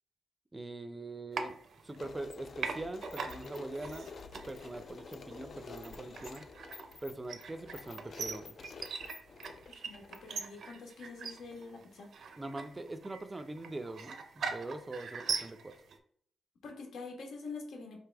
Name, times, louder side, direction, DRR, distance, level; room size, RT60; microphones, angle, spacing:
voice 1, 0.5-1.6 1.8-4.1 4.5-6.4 7.0-8.6 12.4-15.7, right 2 dB, 20° right, 9 dB, 0.5 m, -42 dB
sound 1, 1.3-2.3 2.6-16.0, right 5 dB, 65° right, 0.5 m, -42 dB
sound 2, 2.0-10.5, left 4 dB, 50° left, 0.4 m, -49 dB
voice 2, 9.7-12.1 16.6-18.0, left 4 dB, 80° left, 1 dB, 1.3 m, -46 dB
4.4 x 3.3 x 3.4 m, 0.63 s
cardioid pair, 125°, 0 cm